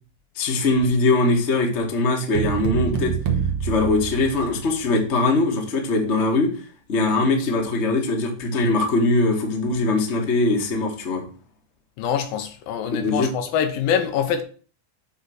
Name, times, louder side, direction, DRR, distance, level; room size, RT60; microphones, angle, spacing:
voice 1, 0.3-3.1 3.6-6.5 6.9-11.2 12.9-13.3, left 2 dB, 45° left, 0.8 m, -21 dB
sound 1, 2.3-4.9, right 8 dB, 80° right, 1.3 m, -26 dB
voice 2, 12.0-14.4, left 8 dB, 85° left, 2.8 m, -24 dB
7.9 x 4.0 x 6.3 m
omnidirectional pair, 4.1 m